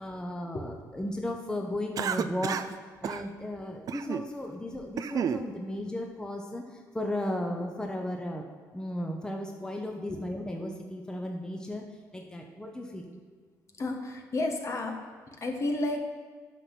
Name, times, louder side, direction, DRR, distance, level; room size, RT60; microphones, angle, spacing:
voice 1, 0.0-2.6 3.0-8.4 8.7-11.8 12.1-13.1, left 1 dB, 10° left, 2 dB, 1.0 m, -35 dB
Cough, 2.0-2.8 3.0-3.2 3.9-4.3 4.7-5.4, right 8 dB, 55° right, 0.4 m, -31 dB
voice 2, 13.8-16.0, left 2 dB, 40° left, 3 dB, 1.3 m, -32 dB
9.1 x 5.8 x 5.9 m, 1.5 s
cardioid pair, 85°, 8 cm